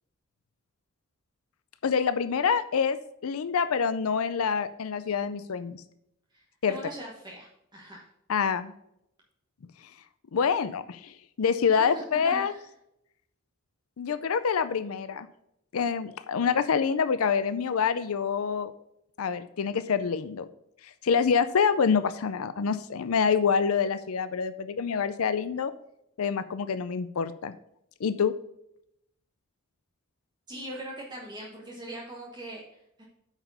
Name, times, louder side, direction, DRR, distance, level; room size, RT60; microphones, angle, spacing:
voice 1, 1.8-3.0 3.2-5.8 6.6-6.8 8.3-8.7 10.3-12.5 14.0-15.3 15.7-18.7 19.2-20.5 21.0-25.7 26.2-27.5 28.0-28.3, left 6 dB, 90° left, 12 dB, 0.5 m, -26 dB
voice 2, 6.3-8.0 11.7-12.6 30.5-33.0, right 1 dB, 20° right, -2 dB, 1.3 m, -41 dB
8.7 x 4.9 x 5.5 m, 0.80 s
head